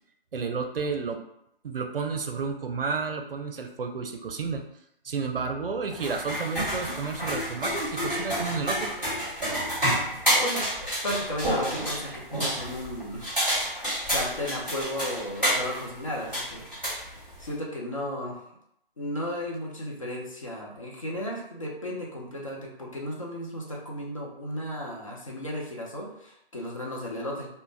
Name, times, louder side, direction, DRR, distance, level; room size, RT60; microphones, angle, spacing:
voice 1, 0.3-1.2 1.6-4.6 5.0-8.9, right 5 dB, 70° right, 5 dB, 0.5 m, -31 dB
sound 1, 5.9-17.5, equal, 5° left, 1.3 m, -29 dB
voice 2, 11.0-13.4 13.8-16.6 17.0-18.4 19.0-27.5, left 1 dB, 35° left, -3 dB, 0.5 m, -34 dB
2.4 x 2.1 x 3.1 m, 0.77 s
figure-of-eight pair, 155°, 30 cm